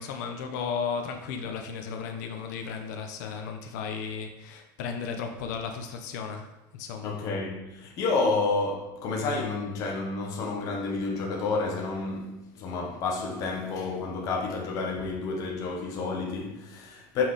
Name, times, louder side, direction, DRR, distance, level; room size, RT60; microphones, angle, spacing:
voice 1, 0.0-7.2, left 6 dB, 75° left, 0.8 m, -35 dB
voice 2, 7.0-17.2, left 3 dB, 35° left, 1.1 m, -30 dB
5.9 x 4.7 x 4.1 m
cardioid pair, 175°, 9 cm